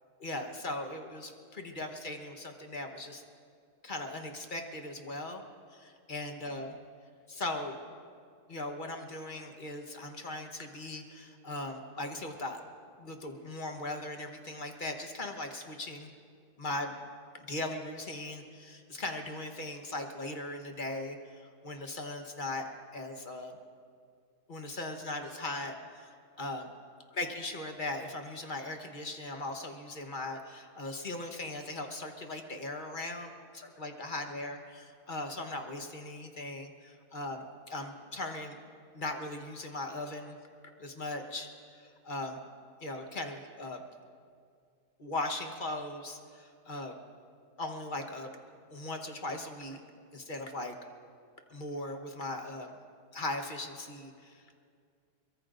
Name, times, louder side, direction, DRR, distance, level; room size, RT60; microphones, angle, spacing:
voice 1, 0.2-3.2 3.8-5.4 5.7-6.8 7.3-7.8 8.5-12.6 13.0-16.1 16.6-16.9 17.3-23.6 24.5-26.6 27.2-33.3 33.5-38.6 38.9-40.4 40.8-42.4 42.8-43.8 45.0-46.9 47.6-48.3 48.7-49.8 50.1-50.8 51.5-52.7 53.1-54.5, left 2 dB, 35° left, 4 dB, 1.2 m, -39 dB
23.5 x 22.0 x 2.6 m, 2.3 s
omnidirectional pair, 1.8 m